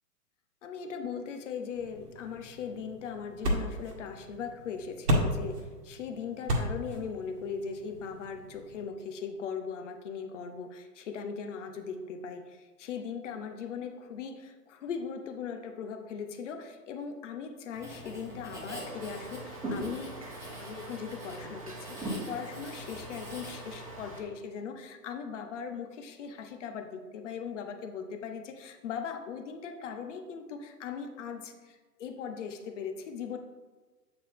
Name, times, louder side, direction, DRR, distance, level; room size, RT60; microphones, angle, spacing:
voice 1, 0.6-20.2 20.6-33.4, left 6 dB, 50° left, 6 dB, 0.8 m, -39 dB
sound 1, 1.7-8.8, equal, 75° right, 1.4 m, -34 dB
Writing, 17.7-24.2, equal, 5° right, 1.1 m, -41 dB
sound 2, 18.8-24.2, right 3 dB, 25° right, 0.3 m, -47 dB
7.7 x 4.1 x 3.6 m, 1.3 s
figure-of-eight pair, 120°, 47 cm